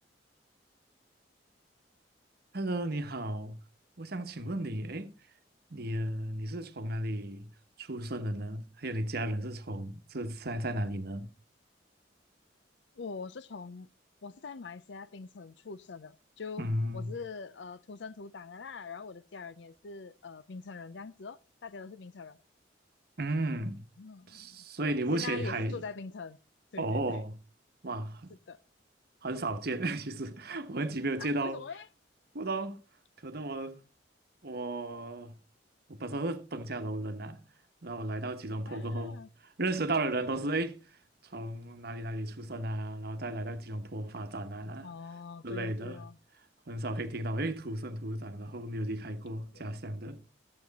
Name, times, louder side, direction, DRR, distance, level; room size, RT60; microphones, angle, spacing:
voice 1, 2.5-3.6 4.0-5.1 5.7-7.5 7.8-11.3 16.6-17.1 23.2-23.8 24.3-25.8 26.8-27.3 27.8-28.3 29.2-31.6 32.3-32.8 33.2-33.8 34.4-35.3 35.9-37.4 37.8-40.8 41.3-44.9 45.4-46.0 46.7-50.2, right 1 dB, 55° right, 1.1 m, -34 dB
voice 2, 13.0-13.9 14.2-16.7 16.9-22.4 24.0-26.4 26.7-27.2 28.5-28.6 31.2-31.9 38.7-39.3 44.8-46.2 49.5-49.6, left 5 dB, 70° left, 0.6 m, -43 dB
14.0 x 7.7 x 4.1 m
head